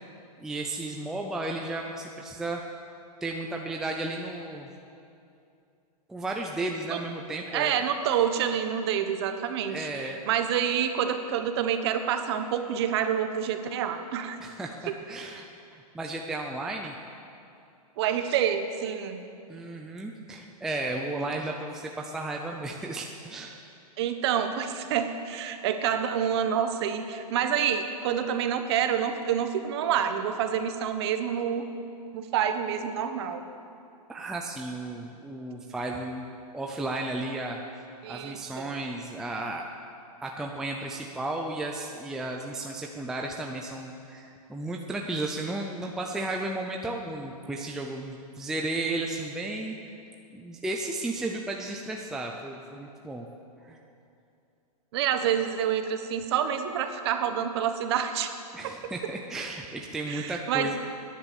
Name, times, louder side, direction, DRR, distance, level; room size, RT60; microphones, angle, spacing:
voice 1, 0.4-2.6 3.2-4.7 6.1-7.8 9.7-10.2 14.4-15.4 15.7-16.9 19.5-23.6 34.1-36.3 36.5-37.6 38.1-39.7 40.2-49.7 50.3-53.3 53.6-53.8 58.5-60.8, right 2 dB, ahead, 1 dB, 0.5 m, -34 dB
voice 2, 7.5-14.4 18.0-19.2 24.0-31.7 32.1-33.4 38.0-38.7 54.9-58.3 60.1-60.7, right 8 dB, 40° right, 8 dB, 1.2 m, -28 dB
19.0 x 10.5 x 7.0 m, 2.6 s
hypercardioid pair, 165°, 20 cm